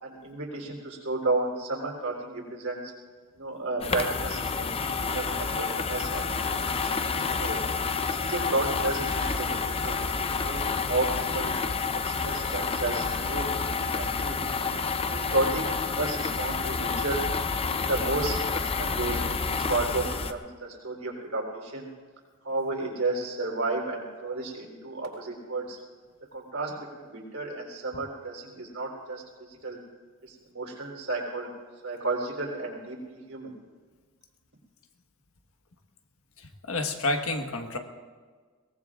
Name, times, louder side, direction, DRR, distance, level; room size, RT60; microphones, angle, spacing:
voice 1, 0.0-2.9 3.4-7.1 7.4-7.6 8.0-10.0 10.4-11.5 12.0-14.4 15.1-17.2 17.7-21.9 22.4-25.8 26.3-29.8 30.2-31.5 31.8-33.5, right 2 dB, 70° right, -1 dB, 3.6 m, -32 dB
sound 1, 3.8-20.3, left 4 dB, 25° left, 0.6 m, -29 dB
voice 2, 36.7-37.8, left 2 dB, 75° left, 4 dB, 1.4 m, -29 dB
22.5 x 18.5 x 2.5 m, 1.5 s
head